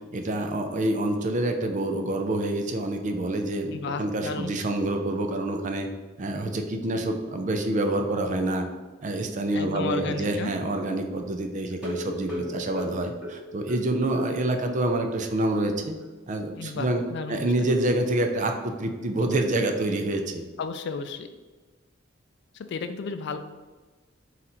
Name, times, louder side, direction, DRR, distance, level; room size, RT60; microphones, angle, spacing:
voice 1, 0.1-5.9 6.2-8.7 9.0-16.0 16.3-17.0 17.3-20.5, right 1 dB, 40° right, 5 dB, 0.4 m, -27 dB
voice 2, 3.7-4.5 9.5-10.5 16.6-17.7 20.6-21.3 22.5-23.4, left 4 dB, 60° left, 9 dB, 0.3 m, -33 dB
sound 1, 11.7-14.3 14.6-14.7 15.1-15.2 15.5-15.6, equal, 5° right, 0.9 m, -36 dB
4.0 x 2.5 x 4.2 m, 1.3 s
head